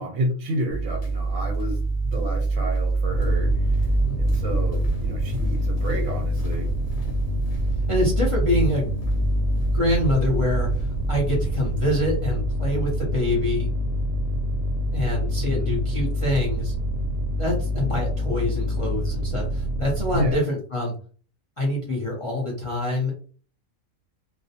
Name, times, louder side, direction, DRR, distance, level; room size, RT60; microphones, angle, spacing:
voice 1, 0.0-3.7 4.2-6.7 15.4-15.8 20.1-20.4, right 1 dB, 90° right, 2 dB, 1.0 m, -30 dB
sound 1, 0.7-12.3, right 3 dB, 85° left, 1.2 m, -27 dB
sound 2, 3.1-20.4, equal, 65° right, 0.7 m, -26 dB
voice 2, 7.9-8.9 9.7-13.7 14.9-16.7 17.4-20.9 21.6-23.1, left 1 dB, 45° left, -2 dB, 0.4 m, -26 dB
2.4 x 2.0 x 2.7 m, 0.41 s
omnidirectional pair, 1.4 m